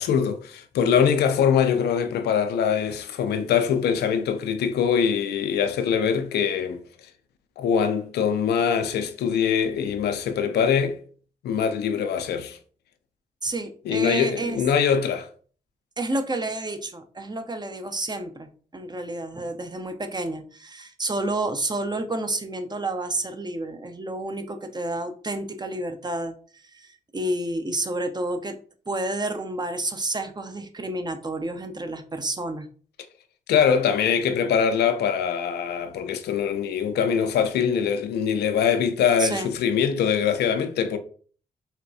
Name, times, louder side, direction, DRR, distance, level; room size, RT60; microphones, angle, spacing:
voice 1, 0.0-6.8 7.6-11.0 11.4-12.6 13.9-15.3 33.5-41.0, left 7 dB, 70° left, 0.5 m, -23 dB
voice 2, 13.4-14.6 16.0-26.3 26.7-28.6 28.9-32.7 39.2-39.5, right 2 dB, 25° right, 0.6 m, -30 dB
4.1 x 2.2 x 2.6 m
hypercardioid pair, 40°, 17 cm